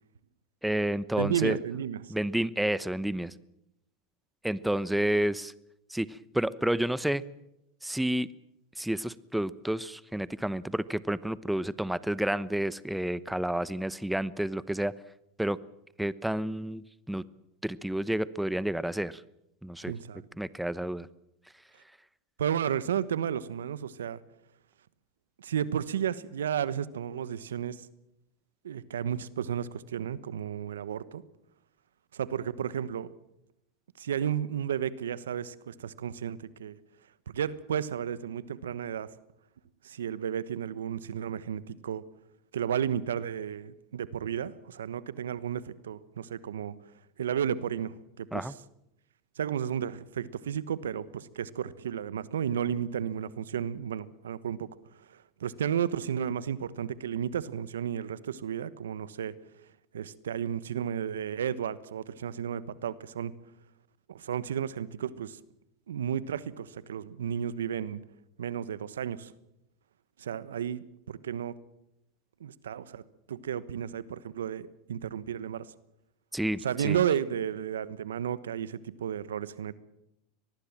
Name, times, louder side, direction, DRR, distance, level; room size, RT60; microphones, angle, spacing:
voice 1, 0.6-1.6 2.1-3.3 4.4-5.5 5.9-7.2 7.8-8.3 8.8-14.9 15.4-15.6 16.0-17.2 17.6-19.2 19.6-19.9 20.4-21.1 48.3-48.5 76.3-77.0, right 1 dB, 5° right, 18 dB, 0.9 m, -30 dB
voice 2, 1.2-2.0 19.9-20.2 22.4-24.2 25.4-27.8 28.6-31.2 32.1-33.1 34.0-36.8 37.3-39.1 39.8-42.0 42.5-46.7 47.2-48.5 49.4-54.7 55.1-59.3 59.9-63.3 64.1-65.4 65.9-68.0 68.4-69.3 70.2-71.5 72.4-73.0 73.3-75.7 76.6-79.7, right 9 dB, 85° right, 17 dB, 1.2 m, -33 dB
24.0 x 19.5 x 7.4 m, 0.83 s
hypercardioid pair, 95°, 0 cm